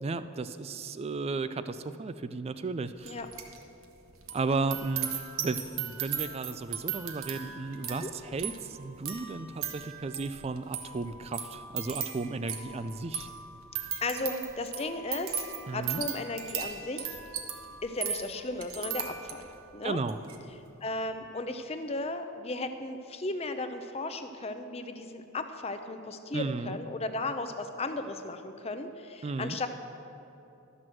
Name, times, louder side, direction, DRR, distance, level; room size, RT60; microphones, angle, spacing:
voice 1, 0.0-3.2 4.3-13.3 15.7-16.0 19.8-20.2 26.3-26.8 29.2-29.6, right 3 dB, 30° right, 12 dB, 0.3 m, -34 dB
sound 1, 3.0-3.6 3.8-19.6 20.0-20.4, right 8 dB, 70° right, 1.1 m, -38 dB
voice 2, 14.0-15.4 15.7-17.2 17.8-20.0 20.8-29.7, left 2 dB, 30° left, 8 dB, 0.6 m, -35 dB
12.5 x 6.1 x 7.6 m, 2.9 s
head